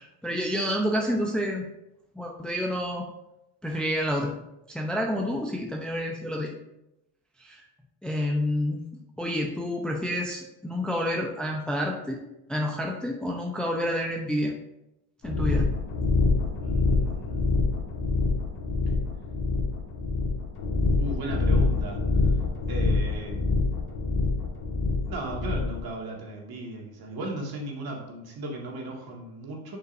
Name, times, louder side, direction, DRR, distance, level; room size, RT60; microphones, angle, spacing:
voice 1, 0.0-1.7 2.1-3.1 3.6-4.3 4.7-6.5 7.4-7.7 8.0-8.8 9.2-12.2 12.5-14.5 15.2-15.7, equal, ahead, 0 dB, 0.7 m, -29 dB
sound 1, 15.2-25.8, left 3 dB, 40° left, 1.8 m, -25 dB
voice 2, 16.6-17.6 21.0-22.3 22.7-23.5 25.1-29.8, right 2 dB, 50° right, -1 dB, 2.1 m, -36 dB
7.6 x 5.4 x 2.7 m, 0.89 s
supercardioid pair, 85°, 48 cm